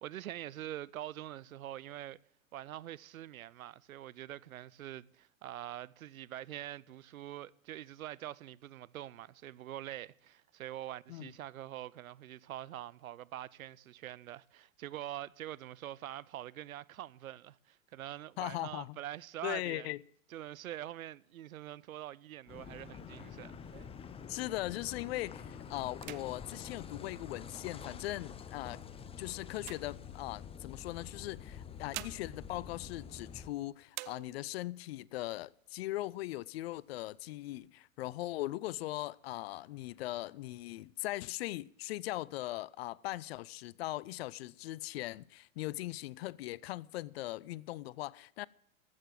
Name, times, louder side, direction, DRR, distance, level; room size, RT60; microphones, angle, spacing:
voice 1, 0.0-2.2 2.5-19.9 20.3-23.6, right 13 dB, 80° right, 0.6 m, -45 dB
voice 2, 18.4-19.0 19.4-20.0 24.3-28.8 29.2-48.5, left 17 dB, 50° left, 0.4 m, -39 dB
Car passing by / Idling / Accelerating revving vroom, 22.5-33.5, left 7 dB, 15° left, 0.7 m, -47 dB
sound 1, 22.7-24.8 25.3-25.5 25.9-27.8 28.5-30.6 31.5-33.5 33.9-34.7 35.2-35.3 35.6-36.2 36.7-37.6, right 20 dB, 35° right, 0.4 m, -51 dB
14.5 x 6.7 x 7.5 m
hypercardioid pair, 105°, 41 cm